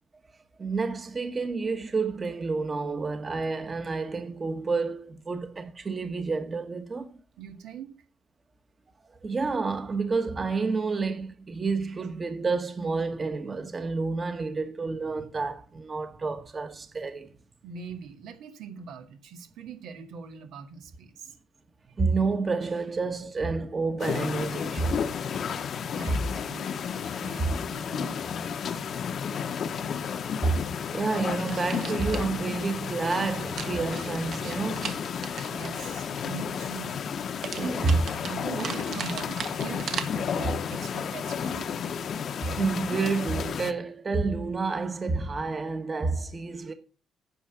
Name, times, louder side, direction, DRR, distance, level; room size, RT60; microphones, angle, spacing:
voice 1, 0.6-7.2 9.1-17.3 22.0-25.1 26.0-26.2 27.4-27.5 30.4-30.7 30.9-35.0 37.6-38.0 38.6-38.7 42.4-46.7, right 4 dB, 30° right, 1.3 m, -29 dB
voice 2, 7.4-8.0 17.6-21.4 25.9-28.2 35.5-37.0 37.6-41.8, right 6 dB, 85° right, 1.9 m, -42 dB
sound 1, 24.0-43.7, left 7 dB, 60° left, 0.9 m, -32 dB
sound 2, 31.5-32.3 33.6-36.2 37.4-40.0, right 7 dB, 65° right, 1.4 m, -38 dB
9.4 x 6.3 x 7.1 m
cardioid pair, 90°, 0 cm